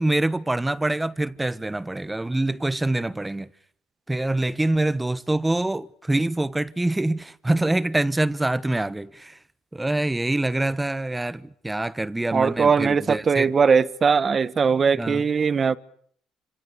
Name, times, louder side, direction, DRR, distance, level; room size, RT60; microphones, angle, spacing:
voice 1, 0.0-3.5 4.1-9.4 9.7-13.5 14.9-15.3, right 2 dB, 10° right, 1.2 m, -25 dB
voice 2, 12.3-15.8, right 5 dB, 35° right, 1.3 m, -20 dB
29.0 x 27.0 x 6.8 m
cardioid pair, 105°, 0 cm